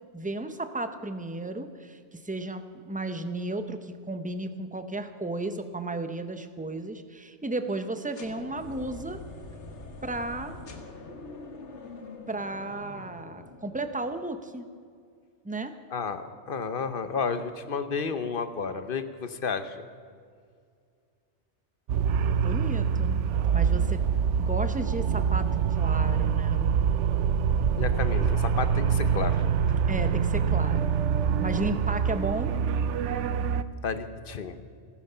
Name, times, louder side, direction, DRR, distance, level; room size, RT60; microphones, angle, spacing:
voice 1, 0.1-9.2 10.0-10.6 12.3-14.7 15.4-15.8 22.4-23.2 23.5-24.0 24.4-26.7 29.9-31.0 31.4-32.6, right 2 dB, 10° right, 9 dB, 0.7 m, -34 dB
sound 1, 8.1-14.1, left 3 dB, 75° left, 1.7 m, -44 dB
voice 2, 15.9-19.8 27.8-29.4 33.8-34.5, left 5 dB, 50° left, 11 dB, 1.0 m, -31 dB
sound 2, 21.9-33.6, right 7 dB, 85° right, 1.0 m, -25 dB
15.5 x 14.5 x 5.6 m, 2.2 s
omnidirectional pair, 1.2 m